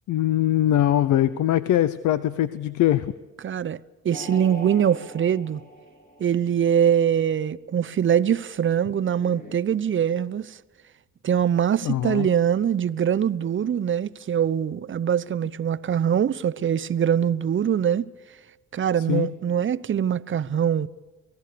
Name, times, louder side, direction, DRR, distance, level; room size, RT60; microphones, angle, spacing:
voice 1, 0.1-3.1 11.8-12.3 19.0-19.3, left 12 dB, 75° left, 0.8 m, -22 dB
voice 2, 3.4-3.8 4.0-5.6 6.2-10.6 11.2-18.1 18.7-20.9, right 9 dB, 40° right, 0.7 m, -23 dB
sound 1, 4.1-6.8 8.9-9.6, right 1 dB, 30° left, 4.1 m, -42 dB
26.5 x 19.0 x 6.8 m
cardioid pair, 90°, 30 cm